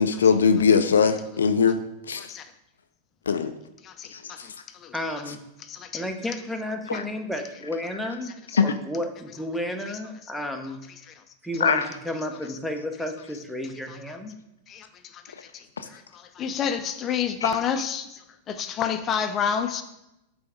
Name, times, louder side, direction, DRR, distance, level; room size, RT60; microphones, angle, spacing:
voice 1, 0.0-1.8 2.1-2.3 3.3-3.5 4.1-4.5 6.9-7.0 8.5-8.6 11.6-11.9 15.8-15.9 17.4-17.5, left 6 dB, 80° left, 9 dB, 0.4 m, -21 dB
voice 2, 3.8-4.9 5.6-6.0 8.2-8.3 9.9-10.0 15.0-19.8, left 7 dB, 30° left, 9 dB, 0.6 m, -30 dB
voice 3, 4.9-5.4 5.9-8.3 8.6-10.8 11.4-14.3, left 1 dB, ahead, 3 dB, 0.9 m, -32 dB
8.0 x 3.4 x 5.1 m, 0.88 s
figure-of-eight pair, 95°, 0 cm